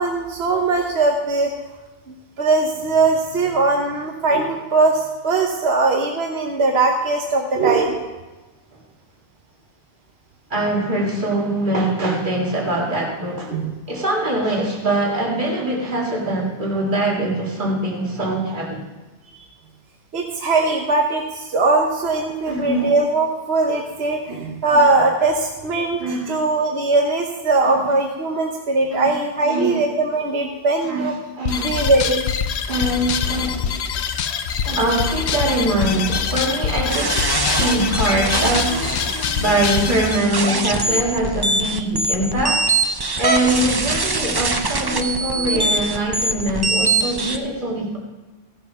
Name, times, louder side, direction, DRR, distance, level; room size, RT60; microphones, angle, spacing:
voice 1, 0.0-1.5 2.4-8.1 13.5-13.7 19.4-19.5 20.1-31.1 31.6-32.2 34.3-34.4 41.9-42.0, right 3 dB, 75° right, 2 dB, 1.3 m, -20 dB
voice 2, 10.5-13.6 13.9-18.8 22.5-22.9 24.3-24.4 24.7-24.8 26.0-26.4 27.6-27.9 28.9-29.1 29.4-29.8 30.8-31.1 31.4-31.9 32.7-33.9 34.6-42.7 43.2-48.0, right 1 dB, 50° right, -2 dB, 2.2 m, -23 dB
sound 1, 31.4-40.2, left 7 dB, 90° left, 1.0 m, -24 dB
sound 2, 36.9-47.4, right 2 dB, 25° right, 0.7 m, -23 dB
15.5 x 7.6 x 5.5 m, 1.2 s
omnidirectional pair, 1.1 m